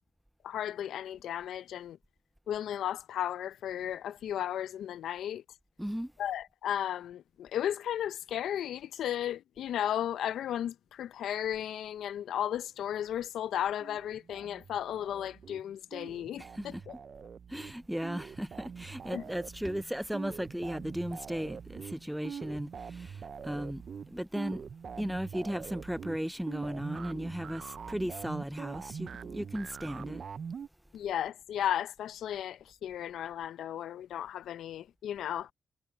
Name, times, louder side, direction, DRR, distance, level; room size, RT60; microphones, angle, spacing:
voice 1, 0.4-2.0 2.5-5.4 6.2-16.9 19.1-19.2 30.9-35.5, left 10 dB, 80° left, 0.6 m, -35 dB
voice 2, 5.8-6.1 16.4-16.8 17.5-24.6 25.0-30.2, equal, 5° right, 0.5 m, -36 dB
sound 1, 13.8-15.6 15.9-30.7, right 6 dB, 60° right, 0.7 m, -44 dB
supercardioid pair, 45°, 0 cm